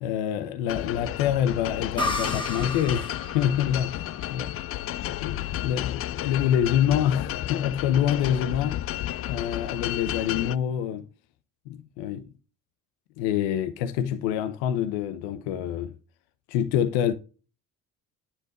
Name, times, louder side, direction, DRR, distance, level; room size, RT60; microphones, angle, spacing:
voice 1, 0.0-4.0 4.3-4.5 5.2-5.3 5.6-8.9 9.2-11.1 11.7-12.3 13.2-15.9 16.5-17.1, left 10 dB, 65° left, 0.9 m, -26 dB
sound 1, 0.7-10.6, left 13 dB, 30° left, 0.4 m, -32 dB
sound 2, 2.0-5.5, left 1 dB, 10° left, 2.0 m, -34 dB
9.8 x 4.4 x 5.0 m
figure-of-eight pair, 55°, 47 cm